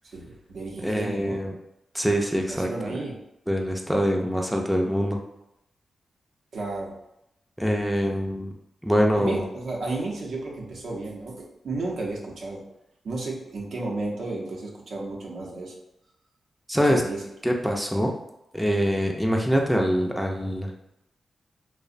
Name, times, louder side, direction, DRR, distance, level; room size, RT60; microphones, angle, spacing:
voice 1, 0.1-1.4 2.5-3.2 6.5-7.0 8.0-8.2 9.2-11.3 11.6-12.6 13.0-15.7 16.8-17.2, right 2 dB, 75° right, -2 dB, 0.6 m, -33 dB
voice 2, 0.8-1.5 1.9-2.9 3.5-5.2 7.6-8.5 8.8-9.5 16.7-17.0 17.4-18.1 18.5-20.7, equal, ahead, 1 dB, 0.4 m, -24 dB
2.6 x 2.0 x 2.5 m, 0.84 s
cardioid pair, 60°, 0 cm